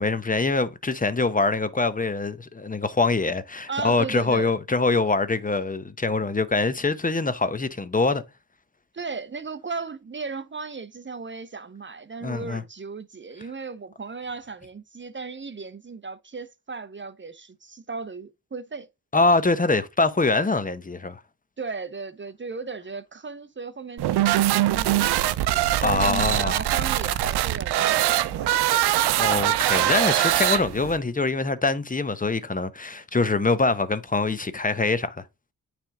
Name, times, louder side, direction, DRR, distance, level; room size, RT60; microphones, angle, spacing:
voice 1, 0.0-8.2 12.2-12.6 19.1-21.2 25.8-26.5 29.2-35.2, left 3 dB, 20° left, 0.8 m, -24 dB
voice 2, 3.7-4.5 8.9-18.9 21.6-28.9, right 4 dB, 30° right, 0.7 m, -36 dB
sound 1, 24.0-31.0, right 13 dB, 85° right, 0.5 m, -22 dB
8.9 x 3.5 x 3.5 m
cardioid pair, 55°, 39 cm